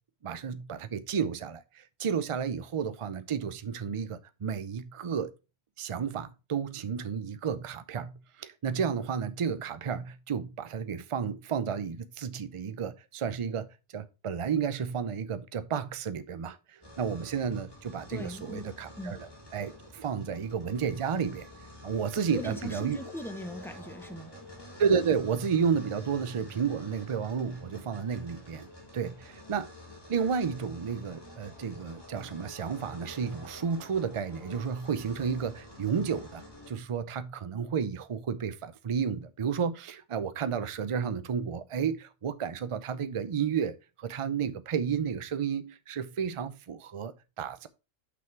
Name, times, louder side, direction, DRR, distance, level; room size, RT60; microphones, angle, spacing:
voice 1, 0.2-5.3 5.8-13.7 13.9-21.5 21.8-23.0 24.8-28.7 28.9-29.7 30.1-47.7, right 6 dB, 45° right, 0.4 m, -32 dB
sound 1, 16.8-36.7, left 1 dB, 20° left, 2.1 m, -49 dB
voice 2, 18.1-19.2 22.2-24.3, equal, ahead, 0.7 m, -40 dB
6.0 x 5.9 x 4.4 m
omnidirectional pair, 1.4 m